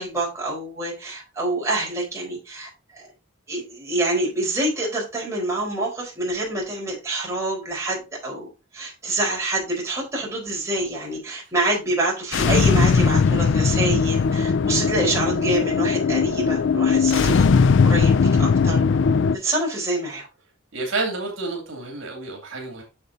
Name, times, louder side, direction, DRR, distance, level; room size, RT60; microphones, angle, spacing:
voice 1, 0.0-3.1 3.5-8.5 8.7-17.5 17.8-18.8 19.4-20.3, right 1 dB, 15° right, -3 dB, 4.2 m, -26 dB
sound 1, 12.3-19.4, left 5 dB, 60° left, 0.4 m, -19 dB
voice 2, 20.7-22.8, right 3 dB, 65° right, 1 dB, 2.6 m, -29 dB
8.6 x 6.8 x 2.7 m, 0.29 s
head